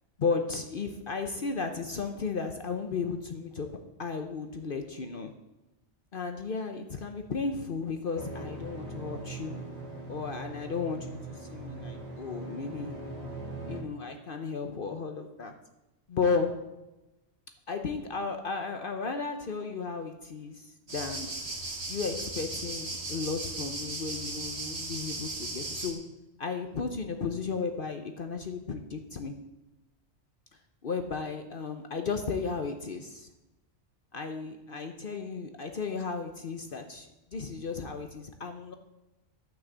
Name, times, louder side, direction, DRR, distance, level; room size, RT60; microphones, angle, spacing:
voice 1, 0.2-3.7 4.0-5.3 6.1-9.6 10.1-13.0 13.7-15.5 16.1-16.5 17.7-21.3 21.9-26.0 26.4-29.4 30.8-33.3 34.1-37.1 37.3-38.8, left 4 dB, 50° left, 6 dB, 1.0 m, -34 dB
sound 1, 8.1-13.8, right 2 dB, 35° right, 1.9 m, -41 dB
sound 2, 20.9-25.9, right 2 dB, 65° right, 2.1 m, -37 dB
11.5 x 6.0 x 8.0 m, 1.0 s
omnidirectional pair, 1.2 m